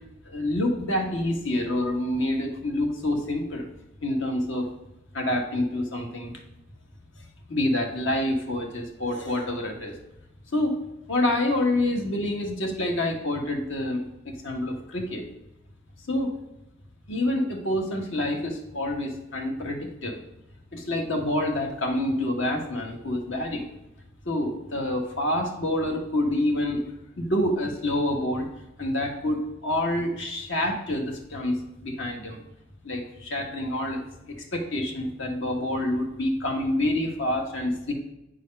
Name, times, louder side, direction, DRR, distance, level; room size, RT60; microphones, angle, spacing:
voice 1, 0.3-3.7 4.0-4.7 5.1-6.3 7.5-9.9 10.5-10.8 11.1-15.2 16.1-16.3 17.1-20.2 20.7-23.7 24.2-26.8 27.2-28.4 28.8-32.4 32.8-37.9, left 1 dB, 75° left, 2 dB, 1.6 m, -27 dB
9.2 x 4.7 x 5.4 m, 0.92 s
head